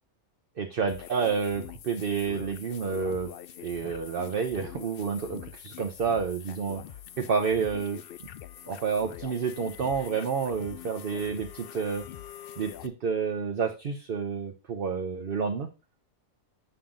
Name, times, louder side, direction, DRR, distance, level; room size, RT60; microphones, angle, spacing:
voice 1, 0.6-3.3 3.6-8.0 8.7-12.0 12.6-15.7, right 6 dB, 50° right, 5 dB, 0.8 m, -29 dB
sound 1, 0.9-12.9, left 11 dB, 65° left, 0.5 m, -44 dB
7.3 x 5.8 x 3.7 m, 0.29 s
omnidirectional pair, 1.5 m